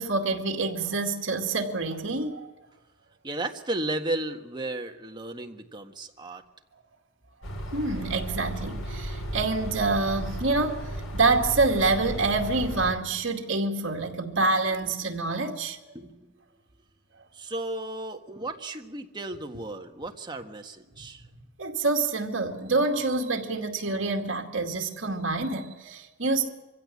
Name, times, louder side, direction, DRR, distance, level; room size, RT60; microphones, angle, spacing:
voice 1, 0.0-2.5 7.7-10.9 11.1-15.8 21.6-26.5, right 3 dB, 65° right, 2.3 m, -27 dB
voice 2, 3.2-6.4 15.9-16.4 17.3-21.3, right 2 dB, 20° right, 1.6 m, -34 dB
sound 1, 7.4-12.9, right 1 dB, 90° left, 4.1 m, -35 dB
24.0 x 16.5 x 8.6 m
head